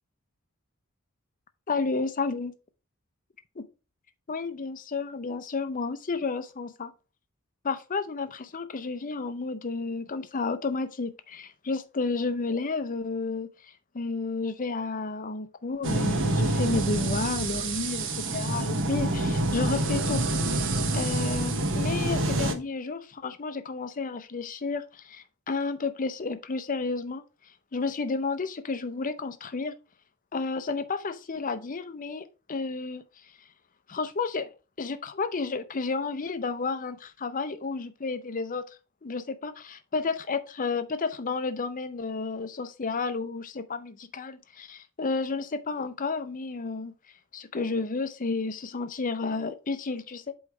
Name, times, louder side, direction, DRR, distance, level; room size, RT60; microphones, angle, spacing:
voice 1, 1.7-2.5 3.6-3.7 4.3-6.9 7.6-20.2 20.5-27.2 27.7-29.7 30.3-33.0 33.9-34.5 34.8-38.7 39.0-46.9 47.3-50.3, left 4 dB, 40° left, 0.6 m, -31 dB
sound 1, 15.8-22.5, right 2 dB, 60° right, 1.0 m, -27 dB
8.1 x 3.2 x 4.7 m
head